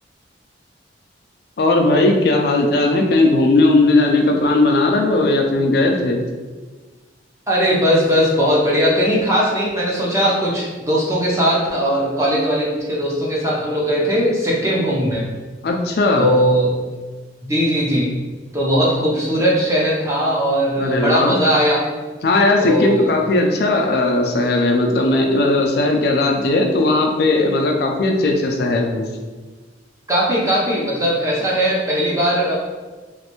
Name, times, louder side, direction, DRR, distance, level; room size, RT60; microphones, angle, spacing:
voice 1, 1.6-6.2 15.6-16.3 20.8-21.4 22.2-29.1, left 2 dB, 55° left, 2 dB, 0.4 m, -17 dB
voice 2, 7.5-15.2 16.2-16.8 17.4-18.1 18.5-21.9 22.6-23.1 30.1-32.5, equal, 15° right, -4 dB, 0.6 m, -19 dB
3.1 x 2.5 x 2.9 m, 1.3 s
head